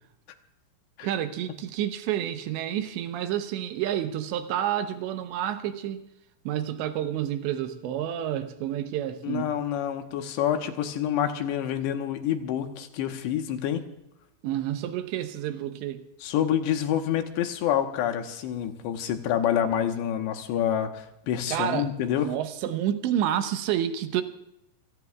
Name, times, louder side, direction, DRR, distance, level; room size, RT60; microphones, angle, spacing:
voice 1, 1.0-6.1 6.5-9.5 14.4-16.0 21.5-21.9 22.2-24.2, right 11 dB, 80° right, 8 dB, 3.2 m, -29 dB
voice 2, 9.2-13.8 16.2-22.3, left 10 dB, 80° left, 5 dB, 3.3 m, -27 dB
29.0 x 17.5 x 2.4 m, 0.83 s
omnidirectional pair, 5.1 m